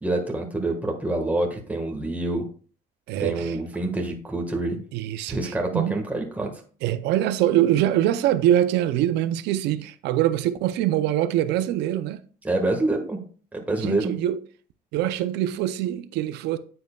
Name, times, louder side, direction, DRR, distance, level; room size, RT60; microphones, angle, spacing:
voice 1, 0.0-2.4 3.2-4.8 5.3-6.5 12.4-13.2 13.5-14.1, right 2 dB, 10° right, 1.5 m, -26 dB
voice 2, 3.1-3.6 4.9-6.0 6.8-12.2 13.8-14.4 14.9-16.6, right 12 dB, 85° right, 0.6 m, -24 dB
9.3 x 7.7 x 2.3 m
cardioid pair, 110°, 17 cm